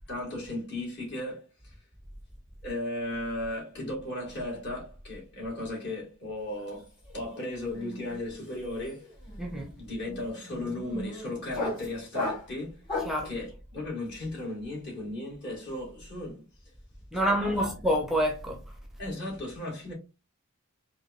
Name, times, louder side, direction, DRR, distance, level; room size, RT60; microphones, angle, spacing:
voice 1, 0.1-1.7 2.6-9.1 9.8-12.8 13.2-16.5 17.2-17.8 19.0-19.9, left 1 dB, 55° left, 2.1 m, -36 dB
sound 1, 6.5-6.8 7.0-13.3, left 2 dB, 20° left, 1.3 m, -37 dB
voice 2, 9.4-9.7 13.1-13.3 17.1-18.6, equal, ahead, 0.6 m, -27 dB
4.5 x 2.3 x 2.5 m
head